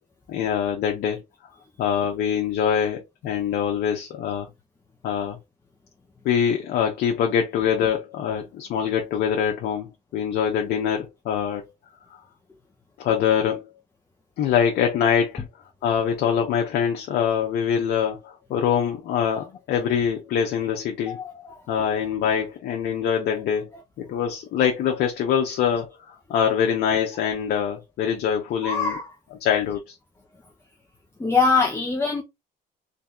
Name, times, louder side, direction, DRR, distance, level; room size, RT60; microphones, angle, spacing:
voice 1, 0.3-1.2 1.8-4.5 5.0-5.4 6.2-11.7 12.1-12.2 13.0-13.7 14.4-15.4 15.8-21.2 21.7-23.7 24.0-29.0 29.3-30.0, left 8 dB, 70° left, 0.8 m, -24 dB
voice 2, 21.1-21.6 28.6-29.1 31.2-32.2, left 4 dB, 15° left, 0.7 m, -23 dB
3.3 x 2.8 x 3.6 m
cardioid pair, 110°, 17 cm